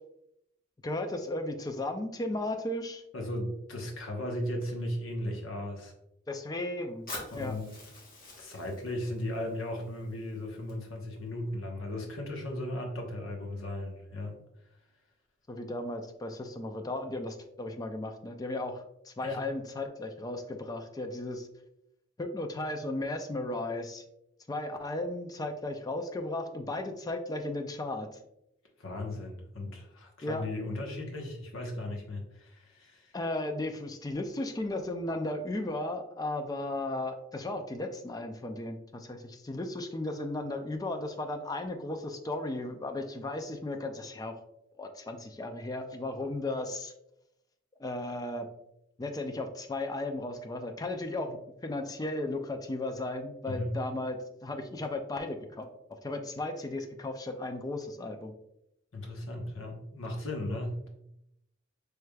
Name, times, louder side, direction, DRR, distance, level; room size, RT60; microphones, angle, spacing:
voice 1, 0.8-3.0 6.3-7.1 7.4-7.6 15.5-21.5 22.2-24.0 24.5-28.2 30.2-30.5 33.1-44.4 44.8-46.9 47.8-48.5 49.0-58.3, left 2 dB, 20° left, 6 dB, 0.3 m, -35 dB
voice 2, 3.1-5.9 7.3-7.7 8.4-14.4 19.2-19.4 28.8-33.1 53.5-53.7 58.9-60.9, left 1 dB, 80° left, 1 dB, 1.0 m, -36 dB
Fire, 7.1-11.1, left 2 dB, 45° left, 1.2 m, -47 dB
4.8 x 3.3 x 2.2 m, 0.82 s
head